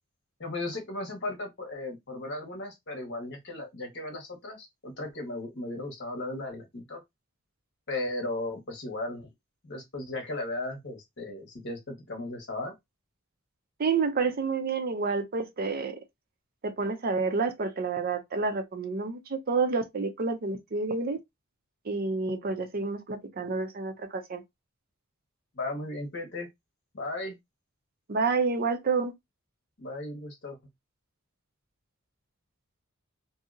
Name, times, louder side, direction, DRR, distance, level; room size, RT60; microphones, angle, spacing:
voice 1, 0.4-7.0 7.9-9.3 9.6-12.7 25.5-26.5 26.9-27.4 29.8-30.6, left 2 dB, 55° left, 1.2 m, -36 dB
voice 2, 13.8-16.0 16.6-21.2 21.8-24.4 28.1-29.1, right 4 dB, 45° right, 0.5 m, -29 dB
2.7 x 2.7 x 2.5 m
head